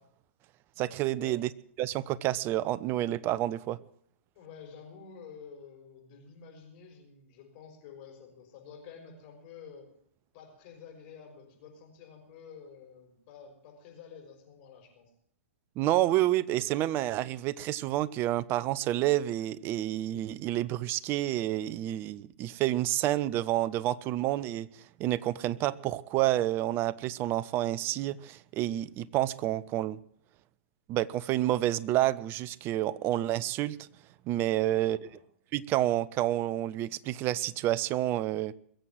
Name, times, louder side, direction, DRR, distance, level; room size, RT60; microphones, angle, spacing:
voice 1, 0.8-1.5 1.8-3.8 15.8-24.7 25.0-30.0 30.9-33.9 34.3-35.1 35.5-38.5, right 14 dB, 30° right, 0.7 m, -29 dB
voice 2, 4.3-9.9 10.3-15.1 34.7-35.2, left 6 dB, 45° left, 6.0 m, -50 dB
22.0 x 7.8 x 7.6 m
hypercardioid pair, 115°, 7 cm